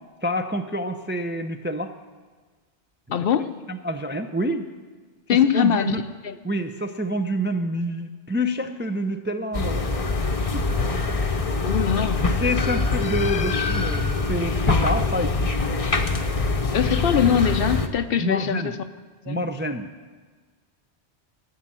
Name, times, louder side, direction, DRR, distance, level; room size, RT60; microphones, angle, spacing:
voice 1, 0.2-1.9 3.7-4.6 5.5-6.0 6.4-9.9 10.5-10.7 12.4-15.5 18.2-18.7 19.3-19.9, equal, 15° right, 6 dB, 0.4 m, -27 dB
voice 2, 3.1-3.5 5.3-6.0 6.2-6.3 11.6-12.3 16.7-18.8 19.3-19.4, left 8 dB, 60° left, 11 dB, 0.8 m, -22 dB
sound 1, 9.5-17.9, left 3 dB, 35° left, 0.8 m, -24 dB
14.0 x 7.3 x 8.9 m, 1.4 s
omnidirectional pair, 1.2 m